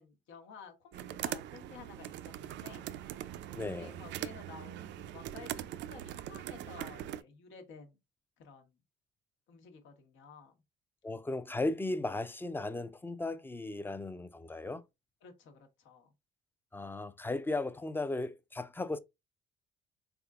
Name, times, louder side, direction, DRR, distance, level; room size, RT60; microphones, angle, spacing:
voice 1, 0.0-3.0 3.6-8.0 8.4-8.7 9.5-10.5 15.2-16.1, left 5 dB, 75° left, 1.1 m, -53 dB
sound 1, 0.9-7.2, right 12 dB, 65° right, 0.4 m, -41 dB
voice 2, 3.5-3.9 11.0-14.8 16.7-19.0, left 2 dB, 10° left, 0.4 m, -36 dB
3.8 x 3.5 x 2.4 m
supercardioid pair, 65°, 20 cm